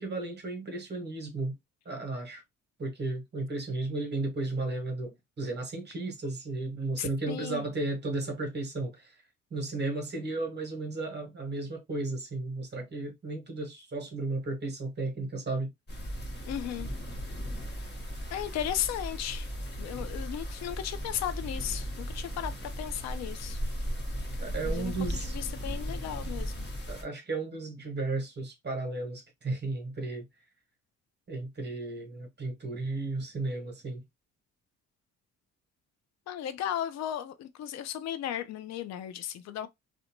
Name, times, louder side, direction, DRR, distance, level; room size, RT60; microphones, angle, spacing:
voice 1, 0.0-1.5 1.8-2.4 2.8-9.2 9.5-15.7 24.4-25.4 26.9-30.2 31.3-34.0, right 2 dB, 35° right, 1.0 m, -34 dB
voice 2, 7.0-7.6 16.5-16.9 18.3-19.5 19.8-23.6 24.6-26.7 36.3-39.7, left 11 dB, 60° left, 0.5 m, -35 dB
sound 1, 15.9-27.0, equal, 35° left, 1.0 m, -36 dB
2.5 x 2.1 x 2.8 m
cardioid pair, 90°, 30 cm